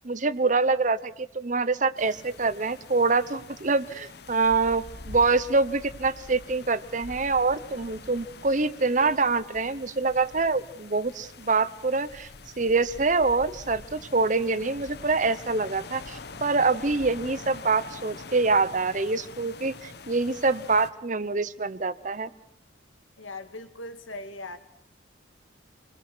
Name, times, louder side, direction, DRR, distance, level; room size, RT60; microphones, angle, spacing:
voice 1, 0.0-12.3 12.6-22.3, right 3 dB, 40° right, 0.9 m, -25 dB
sound 1, 1.9-20.9, left 3 dB, 55° left, 1.1 m, -45 dB
voice 2, 23.2-24.6, left 2 dB, 85° left, 2.3 m, -39 dB
28.0 x 21.0 x 6.3 m
head